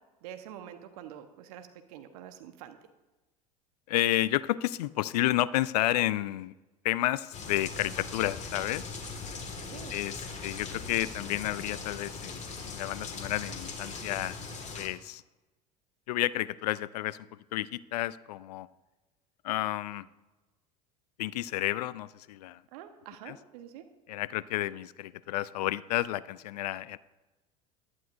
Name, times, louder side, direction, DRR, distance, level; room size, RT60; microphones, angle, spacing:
voice 1, 0.2-2.8 9.3-10.0 22.7-23.8, right 10 dB, 65° right, 8 dB, 1.1 m, -46 dB
voice 2, 3.9-6.5 6.8-8.8 9.9-14.4 14.7-15.2 16.1-18.7 19.4-20.1 21.2-22.6 23.3-23.4 24.1-27.0, left 15 dB, 70° left, 20 dB, 0.5 m, -31 dB
sound 1, 7.3-14.9, left 4 dB, 35° left, 1.9 m, -40 dB
16.0 x 11.5 x 2.6 m, 1.1 s
hypercardioid pair, 75°, 21 cm